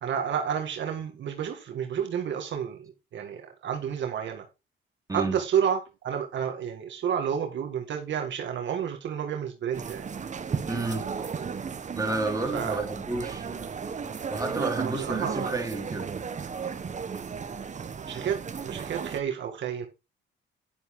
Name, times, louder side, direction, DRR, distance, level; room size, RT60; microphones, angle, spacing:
voice 1, 0.0-4.4 5.1-10.1 12.5-12.8 14.6-15.6 18.1-19.9, right 8 dB, 65° right, 2.0 m, -30 dB
sound 1, 9.7-19.2, right 6 dB, 35° right, 1.2 m, -35 dB
voice 2, 10.7-11.1 12.0-13.7 14.3-16.1, right 3 dB, 15° right, 3.7 m, -30 dB
11.0 x 7.1 x 3.8 m
cardioid pair, 90°, 20 cm